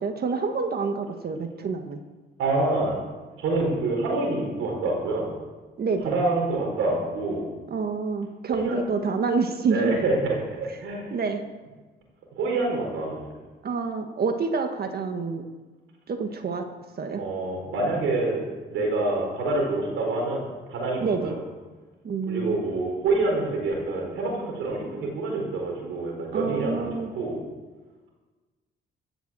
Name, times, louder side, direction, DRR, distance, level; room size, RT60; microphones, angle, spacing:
voice 1, 0.0-2.0 5.8-6.1 7.7-10.0 11.1-11.4 13.6-15.4 16.1-16.7 17.0-17.2 21.0-21.4 22.0-22.6 26.3-27.1, right 4 dB, 50° right, 6 dB, 1.5 m, -27 dB
voice 2, 2.4-3.0 3.4-5.3 6.0-7.5 8.5-8.8 9.7-11.2 12.3-13.2 17.1-18.4 18.7-20.4 20.7-21.4 22.3-27.4, right 2 dB, 90° right, 0 dB, 4.7 m, -26 dB
16.5 x 7.1 x 7.6 m, 1.3 s
cardioid pair, 90°, 20 cm